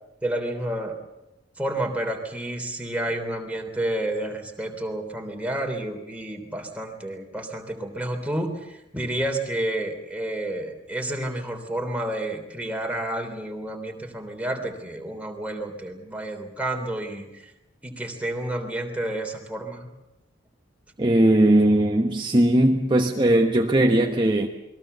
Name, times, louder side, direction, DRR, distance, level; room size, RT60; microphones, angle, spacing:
voice 1, 0.2-0.9 1.6-17.5 17.8-19.9, right 1 dB, 5° right, 3.4 m, -30 dB
voice 2, 21.0-24.5, right 1 dB, 25° right, 1.2 m, -19 dB
28.5 x 22.0 x 6.8 m
head